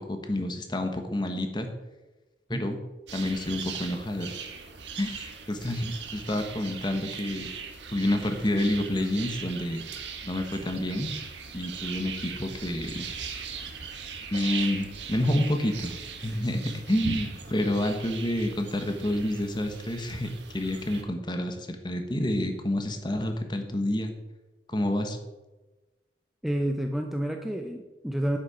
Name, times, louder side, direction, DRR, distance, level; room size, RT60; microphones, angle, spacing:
voice 1, 0.0-1.7 2.5-2.8 3.1-4.3 5.0-7.5 7.9-9.8 10.2-11.1 11.5-13.1 14.3-24.1 24.7-25.2, left 1 dB, 25° left, 6 dB, 1.2 m, -29 dB
sound 1, 3.1-21.0, right 5 dB, 90° right, 1.4 m, -39 dB
voice 2, 26.4-28.4, right 1 dB, ahead, 3 dB, 0.6 m, -29 dB
10.5 x 8.3 x 5.0 m, 1.1 s
head